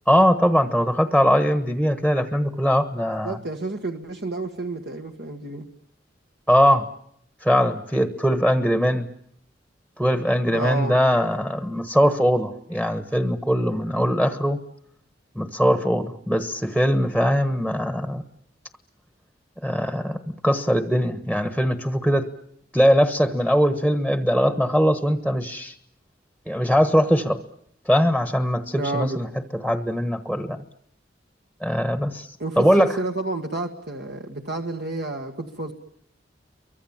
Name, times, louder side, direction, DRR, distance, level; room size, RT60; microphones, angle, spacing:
voice 1, 0.1-3.4 6.5-6.9 7.4-9.1 10.0-14.6 15.3-18.2 19.6-22.3 22.7-25.7 26.5-27.4 27.8-29.3 29.6-30.6 31.6-32.3 32.6-33.0, equal, 5° right, 9 dB, 1.3 m, -21 dB
voice 2, 3.2-5.7 10.5-11.0 28.8-29.2 32.4-35.7, right 2 dB, 65° right, 3 dB, 1.9 m, -30 dB
29.5 x 24.0 x 7.4 m, 0.72 s
head